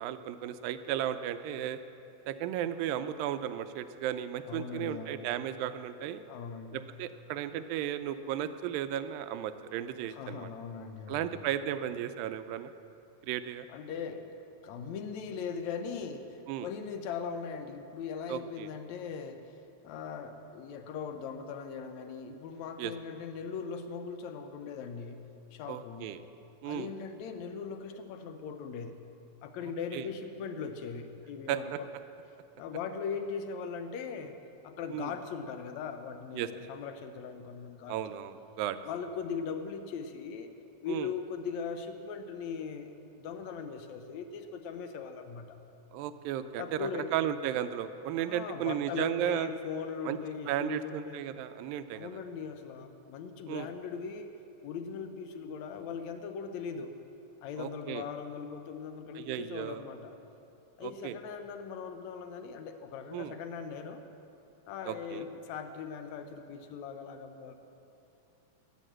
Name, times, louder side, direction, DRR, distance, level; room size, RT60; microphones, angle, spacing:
voice 1, 0.0-1.8 2.3-6.2 6.7-10.5 11.1-12.7 13.2-13.7 16.5-16.7 18.3-18.7 22.8-22.9 25.7-26.2 26.6-26.9 29.9-30.0 31.5-31.8 34.9-35.1 36.3-36.5 37.9-38.8 40.9-41.1 45.9-49.5 50.1-50.2 50.5-52.2 53.5-53.7 57.6-58.0 59.2-59.8 60.8-61.1 63.1-63.3 64.9-65.3, right 11 dB, 85° right, 10 dB, 2.3 m, -34 dB
voice 2, 4.5-5.3 6.3-6.9 10.0-11.4 13.7-14.3 14.6-19.6 19.8-26.1 26.7-29.0 29.4-31.9 32.6-34.4 34.6-38.0 38.8-40.5 40.8-42.9 43.2-45.6 46.6-47.1 48.2-51.2 51.9-54.3 54.6-56.9 57.4-60.2 60.8-64.0 64.7-67.6, left 6 dB, 75° left, 7 dB, 1.7 m, -39 dB
16.0 x 9.3 x 7.6 m, 2.8 s
omnidirectional pair, 4.1 m